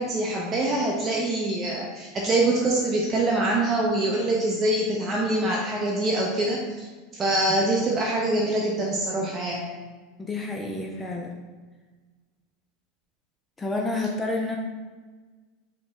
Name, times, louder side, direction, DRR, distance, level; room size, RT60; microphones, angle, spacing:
voice 1, 0.0-6.9 7.1-9.6, right 2 dB, 30° right, -3 dB, 0.5 m, -24 dB
voice 2, 10.2-11.3 13.6-14.6, left 2 dB, 15° left, 1 dB, 0.4 m, -29 dB
4.4 x 2.1 x 3.1 m, 1.4 s
hypercardioid pair, 95°, 0 cm